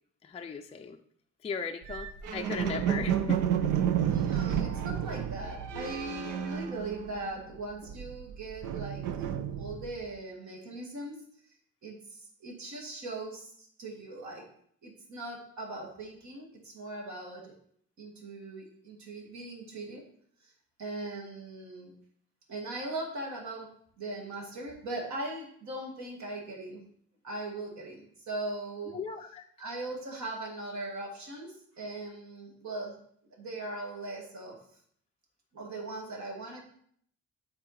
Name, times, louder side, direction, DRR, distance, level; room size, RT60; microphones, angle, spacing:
voice 1, 0.2-1.0 1.4-3.4 28.9-29.4, left 5 dB, 20° left, 4 dB, 0.4 m, -37 dB
sound 1, 1.8-7.4 7.7-10.0, right 9 dB, 90° right, 0.7 m, -31 dB
voice 2, 4.1-9.0 9.6-11.2 11.8-14.5 14.8-17.5 18.0-20.0 20.4-20.5 20.8-21.9 22.5-26.9 27.2-29.0 29.6-33.0 33.4-34.6 35.5-36.6, right 2 dB, 65° right, 0 dB, 2.2 m, -40 dB
8.8 x 3.6 x 4.2 m, 0.63 s
cardioid pair, 90°, 30 cm